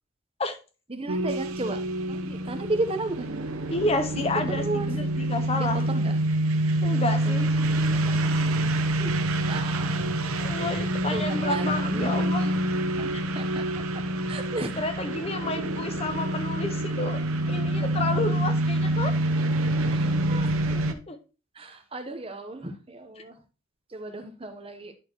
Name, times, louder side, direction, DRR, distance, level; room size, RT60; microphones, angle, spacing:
voice 1, 0.9-1.8 2.1-3.3 4.1-4.9 5.2-6.2 6.9-7.2 7.4-8.7 9.0-9.2 9.5-10.3 11.1-12.3 13.0-14.8 18.0-18.2 19.9-20.7 21.5-23.4 23.9-24.9, right 2 dB, 25° right, 1.0 m, -35 dB
sound 1, 1.1-20.9, right 1 dB, 80° right, 1.0 m, -26 dB
voice 2, 3.7-5.8 6.8-7.5 10.4-12.5 14.8-19.1 20.7-21.2, left 2 dB, 25° left, 0.6 m, -30 dB
11.5 x 4.4 x 3.0 m
head